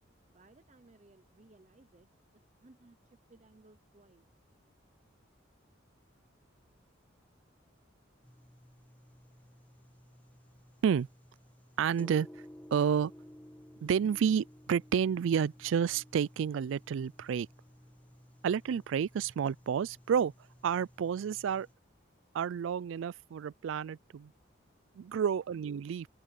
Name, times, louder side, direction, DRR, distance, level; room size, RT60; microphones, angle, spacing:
voice 1, 0.3-2.1 2.6-3.0 3.3-4.3, right 2 dB, 35° right, 0.6 m, -60 dB
sound 1, 8.2-21.7, equal, 10° left, 1.9 m, -56 dB
voice 2, 11.8-12.3 12.7-13.1 13.8-17.5 18.4-20.3 20.6-21.7 22.3-24.3 24.9-26.1, right 7 dB, 75° right, 0.3 m, -30 dB
open air
head